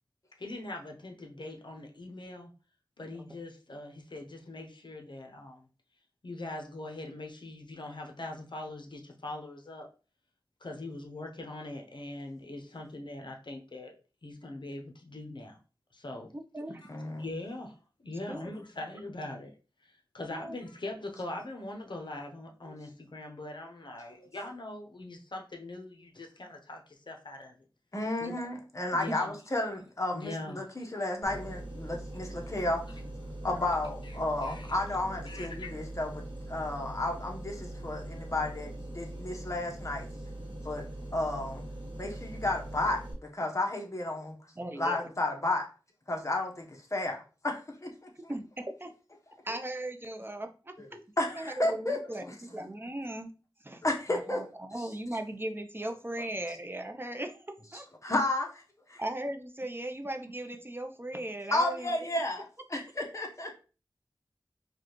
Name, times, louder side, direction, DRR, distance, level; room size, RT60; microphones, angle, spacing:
voice 1, 0.4-2.5 3.0-5.7 6.2-9.9 10.6-13.9 14.2-15.6 15.9-16.3 17.2-17.7 18.0-19.5 20.1-26.8 27.1-27.5 28.9-29.3 30.1-30.8 34.4-34.7 35.3-35.7, left 2 dB, 60° left, 2 dB, 0.7 m, -42 dB
voice 2, 16.3-16.8 18.3-18.6 20.3-20.5 28.2-28.3 29.1-29.2 44.6-45.1 48.3-48.9 49.4-50.8 51.4-53.3 53.6-53.8 54.1-57.9 59.0-62.2, right 1 dB, 25° right, 6 dB, 0.5 m, -38 dB
voice 3, 16.9-17.3 22.6-22.7 24.2-24.3 27.9-33.0 33.4-40.1 40.6-40.8 41.1-41.7 41.9-43.0 43.3-44.4 44.7-45.7 46.1-48.1 50.8-50.9 51.2-52.0 53.8-54.4 54.8-54.9 58.0-58.6 58.9-59.0 61.5-63.5, left 2 dB, 35° left, 1 dB, 0.9 m, -32 dB
sound 1, 31.2-43.1, right 1 dB, 85° right, 1.5 m, -42 dB
4.8 x 2.3 x 3.0 m, 0.35 s
wide cardioid pair, 70°, 9 cm